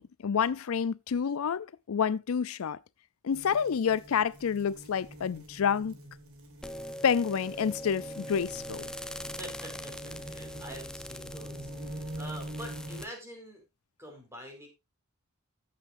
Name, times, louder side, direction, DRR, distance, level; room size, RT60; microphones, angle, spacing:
voice 1, 0.0-2.8 3.2-6.0 7.0-8.9, left 7 dB, 80° left, 0.4 m, -29 dB
sound 1, 3.3-13.0, right 1 dB, 90° right, 2.7 m, -45 dB
sound 2, 6.6-13.1, equal, 5° left, 0.5 m, -42 dB
voice 2, 9.4-11.7 12.2-13.6 14.0-14.7, equal, 10° right, 4.4 m, -45 dB
14.0 x 7.6 x 2.6 m
head